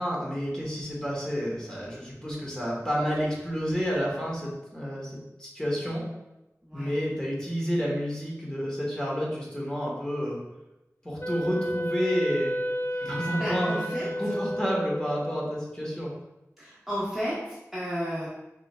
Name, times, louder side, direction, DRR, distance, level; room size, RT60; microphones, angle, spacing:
voice 1, 0.0-5.1 5.4-6.0 6.7-10.4 11.0-12.5 13.0-16.1, equal, 15° left, -4 dB, 1.5 m, -30 dB
voice 2, 6.7-7.0 12.9-14.4 16.6-18.3, equal, ahead, -9 dB, 1.1 m, -34 dB
Wind instrument woodwind instrument, 11.2-15.5, equal, 45° left, 0.5 m, -32 dB
4.4 x 3.5 x 3.4 m, 0.97 s
wide cardioid pair, 45°, 6 cm